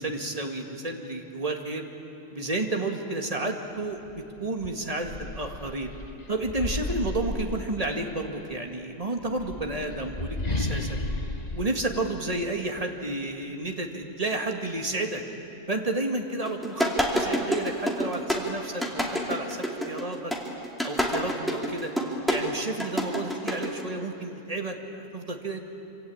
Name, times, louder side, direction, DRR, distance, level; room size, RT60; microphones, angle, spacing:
voice 1, 0.0-1.8 2.3-5.9 6.3-11.0 11.5-15.2 15.7-20.3 20.8-21.9 22.3-25.6, right 2 dB, 30° right, 3 dB, 2.1 m, -31 dB
sound 1, 4.1-4.2 4.6-8.2 9.2-12.8, left 2 dB, 35° left, 1.4 m, -34 dB
sound 2, 16.4-23.8, equal, ahead, 2.8 m, -27 dB
26.5 x 26.0 x 8.8 m, 2.8 s
omnidirectional pair, 1.3 m